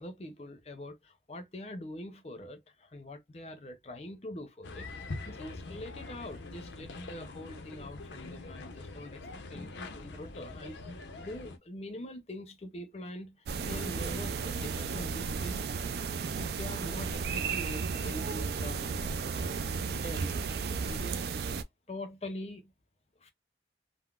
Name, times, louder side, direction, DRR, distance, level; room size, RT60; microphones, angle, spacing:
voice 1, 0.0-4.9 5.3-9.2 9.5-10.8 11.2-15.6 16.3-19.5 19.9-20.3 20.9-21.2 21.9-22.7 23.2-23.3, left 1 dB, 35° left, 0.6 m, -44 dB
sound 1, 4.6-11.6, left 2 dB, 85° left, 0.6 m, -43 dB
sound 2, 13.5-21.6, right 5 dB, 60° right, 0.3 m, -34 dB
3.7 x 2.0 x 2.3 m
head